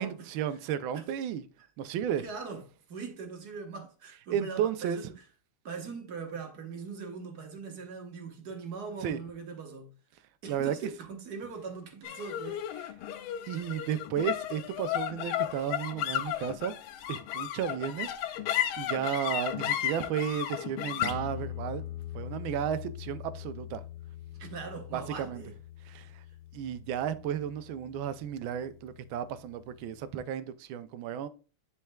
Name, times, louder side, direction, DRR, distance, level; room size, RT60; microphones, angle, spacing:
voice 1, 0.0-1.4 1.8-2.2 4.3-5.0 9.0-9.2 10.5-10.7 13.5-16.7 17.1-18.4 18.8-21.8 22.1-23.8 24.9-25.4 25.8-26.1 26.5-31.3, right 9 dB, 75° right, 1.3 m, -33 dB
voice 2, 2.2-2.6 2.9-5.1 5.6-9.9 10.4-12.6 24.3-25.5, right 5 dB, 50° right, 1.5 m, -41 dB
sound 1, 12.0-28.6, left 11 dB, 80° left, 1.4 m, -36 dB
10.5 x 4.4 x 2.2 m
omnidirectional pair, 2.4 m